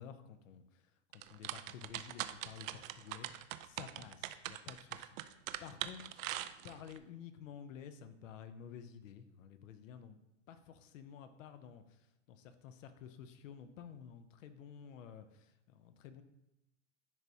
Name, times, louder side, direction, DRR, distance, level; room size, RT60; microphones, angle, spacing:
voice 1, 0.0-5.2 5.6-6.2 6.6-16.2, left 8 dB, 75° left, 10 dB, 0.7 m, -52 dB
sound 1, 1.1-7.0, right 13 dB, 80° right, 0.5 m, -42 dB
10.5 x 3.5 x 2.8 m, 0.89 s
supercardioid pair, 130°, 39 cm